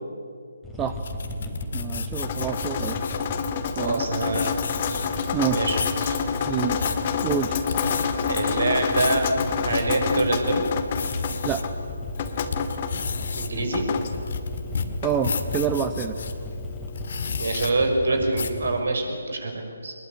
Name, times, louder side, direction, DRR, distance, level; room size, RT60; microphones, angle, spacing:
sound 1, 0.6-18.8, equal, 5° left, 3.2 m, -36 dB
sound 2, 0.9-3.3 3.9-4.0 4.2-5.3 5.6-6.0 6.5-7.0 7.6-8.1 8.6-9.3 9.8-9.9 10.3-11.6 12.1-16.3 16.9-17.7 18.3-18.6, left 5 dB, 50° left, 2.0 m, -32 dB
voice 1, 1.7-3.0 3.8-4.1 5.3-5.6 6.1-6.2 6.5-6.8 7.2-7.6 11.4-11.6 15.0-16.2, right 9 dB, 15° right, 7 dB, 0.9 m, -27 dB
Drip, 2.2-17.7, left 6 dB, 35° left, 2.0 m, -29 dB
voice 2, 3.8-4.6 5.5-6.2 8.3-9.3 9.6-10.6 13.4-13.9 17.4-19.9, right 2 dB, 65° right, 4 dB, 5.8 m, -25 dB
23.0 x 21.0 x 9.9 m, 2.2 s
figure-of-eight pair, 145°, 0 cm